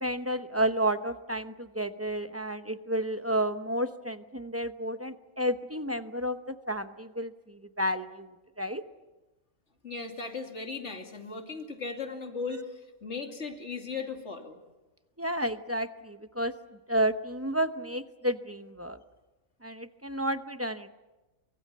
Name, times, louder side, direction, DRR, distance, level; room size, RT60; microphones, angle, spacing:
voice 1, 0.0-8.8 15.2-16.5 16.9-19.0 19.6-20.9, right 1 dB, 15° right, 9 dB, 0.7 m, -31 dB
voice 2, 9.8-14.6, left 4 dB, 55° left, 4 dB, 2.9 m, -37 dB
24.5 x 23.0 x 7.4 m, 1.1 s
omnidirectional pair, 1.4 m